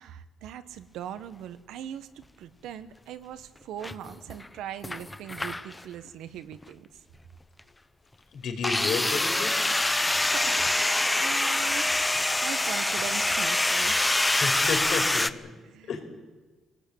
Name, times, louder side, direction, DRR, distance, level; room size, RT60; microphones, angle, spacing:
voice 1, 0.0-7.0 10.1-14.0 15.6-15.9, right 10 dB, 85° right, 1.4 m, -41 dB
sound 1, 3.8-4.5 4.8-5.8 6.5-6.6 8.6-15.3, left 2 dB, 15° left, 1.0 m, -25 dB
voice 2, 8.3-9.6 14.3-15.3 15.9-16.0, left 5 dB, 70° left, 5.3 m, -31 dB
23.0 x 18.0 x 8.8 m
cardioid pair, 90°, 0 cm